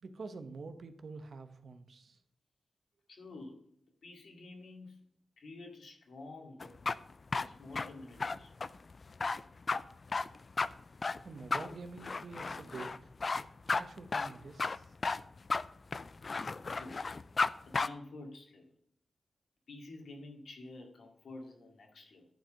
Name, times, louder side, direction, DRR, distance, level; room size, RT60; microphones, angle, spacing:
voice 1, 0.0-2.2 11.2-13.1 13.7-14.9, right 4 dB, 60° right, 8 dB, 1.0 m, -47 dB
voice 2, 3.1-3.7 4.0-5.0 5.4-6.7 7.4-8.5 16.7-17.1 17.7-18.7 19.7-22.3, left 2 dB, 75° left, 2 dB, 2.2 m, -49 dB
sound 1, 6.6-17.5 17.7-17.9, left 4 dB, 40° left, 0.3 m, -34 dB
11.5 x 4.6 x 5.2 m, 0.68 s
wide cardioid pair, 115°, 0 cm